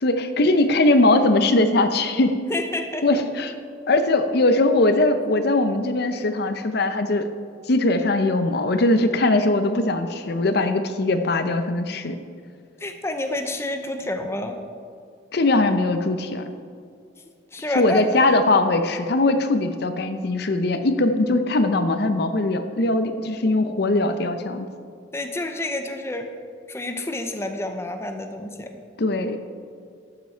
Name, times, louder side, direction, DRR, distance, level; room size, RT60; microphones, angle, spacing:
voice 1, 0.0-2.3 3.0-3.5 3.9-7.3 7.7-12.2 15.3-16.5 17.7-24.7 29.0-29.4, left 2 dB, 55° left, 9 dB, 0.6 m, -20 dB
voice 2, 2.5-3.2 12.8-14.6 17.5-18.1 25.1-26.3 26.7-28.8, left 1 dB, 15° left, 5 dB, 0.6 m, -29 dB
12.0 x 8.0 x 4.5 m, 2.3 s
head